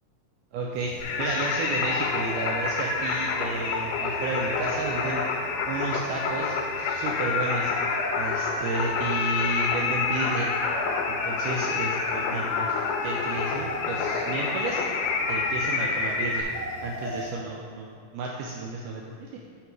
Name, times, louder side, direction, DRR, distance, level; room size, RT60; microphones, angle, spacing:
voice 1, 0.5-0.9 1.2-5.2 5.7-7.7 8.2-10.5 11.1-14.8 15.3-16.5 16.8-19.3, right 3 dB, 80° right, -2 dB, 2.0 m, -32 dB
sound 1, 0.7-17.3, equal, 60° right, 2.1 m, -41 dB
Singing, 1.0-16.4, left 4 dB, 90° left, 2.3 m, -28 dB
8.2 x 3.8 x 4.6 m, 2.2 s
omnidirectional pair, 3.9 m